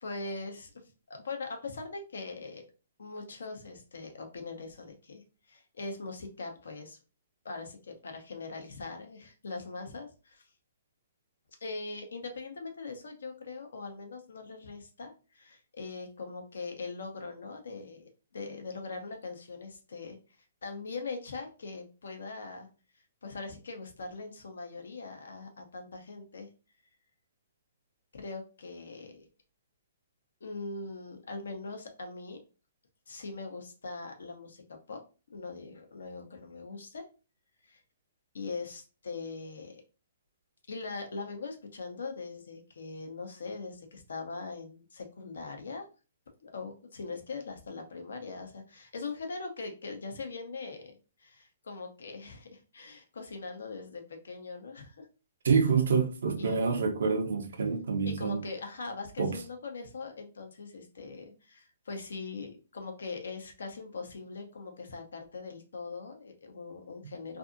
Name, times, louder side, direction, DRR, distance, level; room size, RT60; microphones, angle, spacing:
voice 1, 0.0-0.8 1.1-2.6 3.0-7.0 7.4-10.4 11.6-20.2 20.6-22.7 23.2-26.5 28.1-29.3 30.4-32.4 33.1-35.0 35.3-37.1 37.6-37.8 38.3-39.8 40.7-45.9 46.4-55.1 56.4-56.8 58.0-67.4, left 3 dB, 80° left, 0.7 m, -41 dB
voice 2, 55.4-58.4 59.2-59.4, right 5 dB, 75° right, 0.6 m, -27 dB
2.6 x 2.5 x 2.5 m
hypercardioid pair, 130°, 0 cm